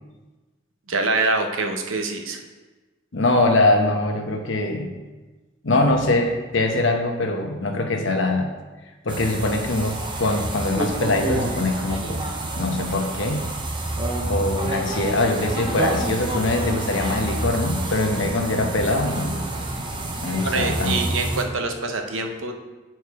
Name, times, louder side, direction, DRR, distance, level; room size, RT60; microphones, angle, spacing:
voice 1, 0.9-2.4 20.4-22.5, right 3 dB, 80° right, 4 dB, 0.9 m, -25 dB
voice 2, 3.1-4.9 5.6-8.5 9.0-12.3 12.6-13.4 14.3-19.4 20.2-21.1, left 2 dB, 65° left, 4 dB, 0.9 m, -22 dB
sound 1, 9.1-21.4, right 2 dB, 25° right, 0.8 m, -28 dB
8.4 x 4.5 x 4.7 m, 1.2 s
head